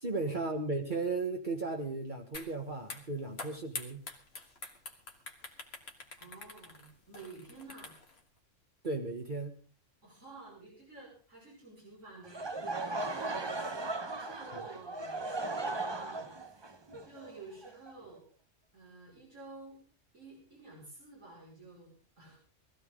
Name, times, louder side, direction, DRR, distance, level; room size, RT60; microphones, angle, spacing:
voice 1, 0.0-4.1 8.8-9.6 14.5-14.6, right 3 dB, 40° right, 1 dB, 1.6 m, -35 dB
sound 1, 2.3-2.5 2.8-8.2, left 3 dB, 55° left, 1.9 m, -45 dB
voice 2, 6.2-7.9 10.0-13.6 14.0-18.2 18.7-19.8 20.1-22.4, right 2 dB, 85° right, -5 dB, 5.9 m, -51 dB
Laughter / Crowd, 12.2-18.2, right 2 dB, 25° right, 0.8 m, -37 dB
20.0 x 14.5 x 3.7 m, 0.38 s
omnidirectional pair, 1.3 m